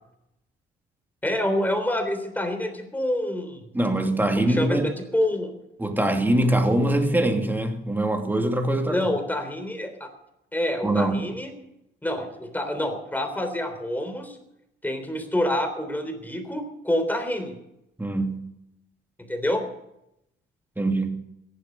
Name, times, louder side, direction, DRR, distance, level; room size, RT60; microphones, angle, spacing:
voice 1, 1.2-3.6 4.4-5.5 8.9-10.1 10.5-11.5 12.0-14.4 14.8-17.5 19.3-19.7, left 1 dB, 10° left, 6 dB, 3.5 m, -27 dB
voice 2, 3.7-4.9 5.8-9.1 10.8-11.3 18.0-18.4 20.8-21.2, right 1 dB, 10° right, 4 dB, 2.4 m, -23 dB
15.0 x 11.5 x 6.9 m, 0.84 s
cardioid pair, 90°, 20 cm